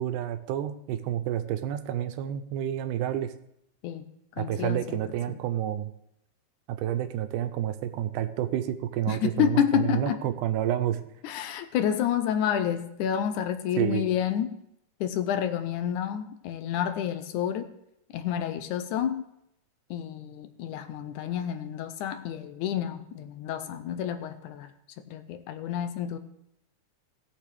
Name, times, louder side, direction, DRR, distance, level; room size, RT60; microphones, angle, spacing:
voice 1, 0.0-3.3 4.4-5.9 6.7-11.0 13.8-14.1, right 11 dB, 90° right, 9 dB, 2.2 m, -29 dB
voice 2, 4.4-5.0 9.1-10.2 11.2-14.5 15.0-17.7 18.1-19.2 19.9-24.7 25.1-26.2, left 9 dB, 80° left, 9 dB, 2.1 m, -29 dB
18.5 x 6.8 x 3.3 m, 0.78 s
omnidirectional pair, 3.7 m